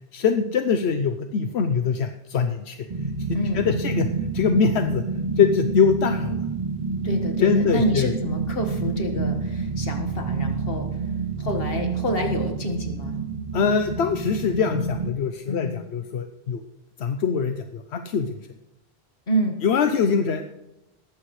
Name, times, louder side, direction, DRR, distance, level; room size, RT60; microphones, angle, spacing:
voice 1, 0.1-2.8 3.3-4.1 4.3-5.0 5.4-6.4 7.4-8.1 13.5-16.6 17.0-18.3 19.6-20.4, left 6 dB, 85° left, 7 dB, 1.0 m, -23 dB
sound 1, 2.9-15.1, right 4 dB, 40° right, 0.6 m, -28 dB
voice 2, 3.3-3.9 7.0-10.9 11.4-13.2 15.5-15.8 19.3-19.6, equal, 65° left, 4 dB, 1.9 m, -28 dB
19.5 x 14.5 x 3.2 m, 0.95 s
omnidirectional pair, 1.1 m